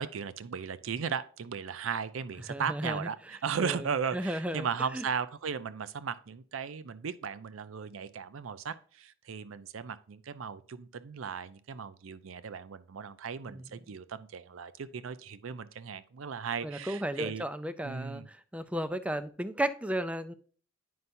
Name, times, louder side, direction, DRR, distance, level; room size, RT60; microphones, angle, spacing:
voice 1, 0.0-17.4 17.8-18.3, right 6 dB, 80° right, 0.5 m, -36 dB
voice 2, 2.5-3.1 3.6-3.8 4.1-4.7 4.9-5.0 13.5-13.6 16.6-20.3, right 1 dB, 5° right, 0.4 m, -34 dB
9.4 x 5.5 x 2.6 m
head